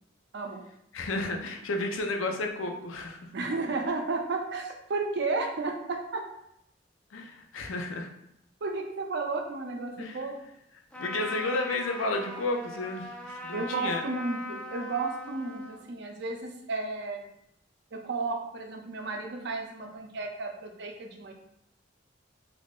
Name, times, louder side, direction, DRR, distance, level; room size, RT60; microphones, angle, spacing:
voice 1, 0.9-3.3 7.1-8.1 10.0-10.2 11.0-14.0, left 2 dB, 85° left, 3 dB, 0.5 m, -32 dB
voice 2, 3.3-6.3 8.6-10.3 13.5-17.2 17.9-21.3, right 3 dB, 60° right, 2 dB, 0.5 m, -33 dB
Trumpet, 10.9-15.8, left 1 dB, 5° left, 0.3 m, -40 dB
3.5 x 2.4 x 2.4 m, 0.77 s
head